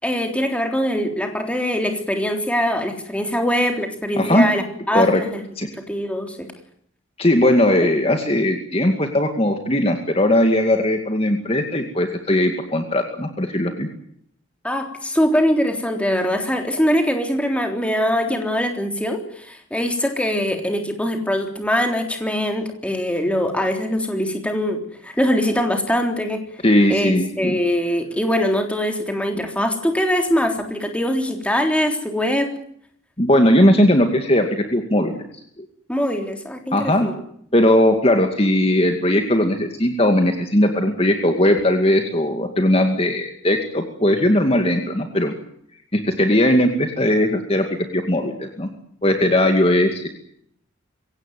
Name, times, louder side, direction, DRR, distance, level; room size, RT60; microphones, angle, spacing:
voice 1, 0.0-5.4 5.7-6.5 14.6-26.6 26.9-32.5 35.9-37.2, equal, 5° left, 4 dB, 3.6 m, -22 dB
voice 2, 7.2-13.9 26.6-27.6 33.2-35.2 35.6-35.7 36.7-37.1 37.5-45.3 45.9-47.7 47.9-48.7 49.0-50.1, left 1 dB, 30° left, 5 dB, 2.3 m, -18 dB
24.0 x 17.5 x 9.4 m, 0.68 s
head